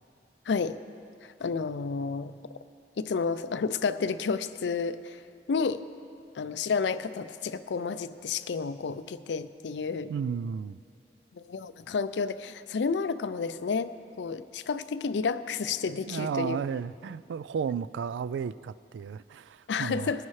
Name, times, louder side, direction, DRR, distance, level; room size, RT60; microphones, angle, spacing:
voice 1, 0.5-0.8 1.4-2.3 3.0-5.2 5.5-5.8 6.4-10.1 11.3-13.9 14.2-16.6 19.7-20.3, left 5 dB, 80° left, 13 dB, 0.4 m, -30 dB
voice 2, 10.1-10.8 16.1-20.1, right 6 dB, 85° right, 17 dB, 0.3 m, -33 dB
20.5 x 9.8 x 3.2 m, 2.5 s
head